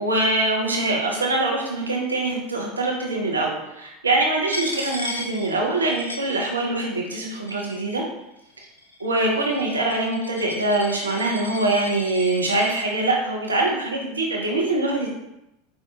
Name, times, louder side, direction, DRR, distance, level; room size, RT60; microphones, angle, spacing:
voice 1, 0.0-8.0 9.0-15.1, right 2 dB, 80° right, -1 dB, 0.6 m, -23 dB
Coin (dropping), 4.5-6.8 7.1-7.9 8.6-12.9, left 1 dB, 85° left, 0.4 m, -36 dB
4.6 x 2.3 x 2.7 m, 0.87 s
figure-of-eight pair, 80°, 0 cm